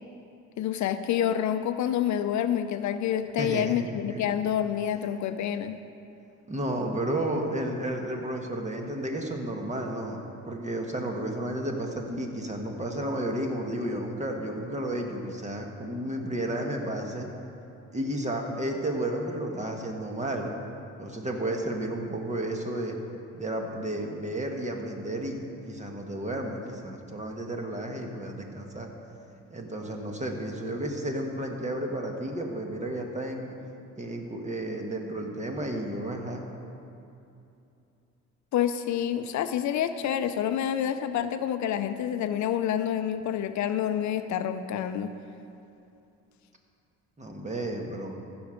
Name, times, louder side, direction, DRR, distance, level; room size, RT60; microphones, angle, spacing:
voice 1, 0.6-5.8 38.5-45.1, left 10 dB, 70° left, 10 dB, 0.6 m, -28 dB
voice 2, 3.4-4.2 6.5-17.3 17.9-20.5 21.0-23.0 23.4-28.9 29.5-33.4 34.0-36.5 47.2-48.1, right 1 dB, 25° right, 2 dB, 1.5 m, -32 dB
15.0 x 6.2 x 5.0 m, 2.7 s
cardioid pair, 90°, 30 cm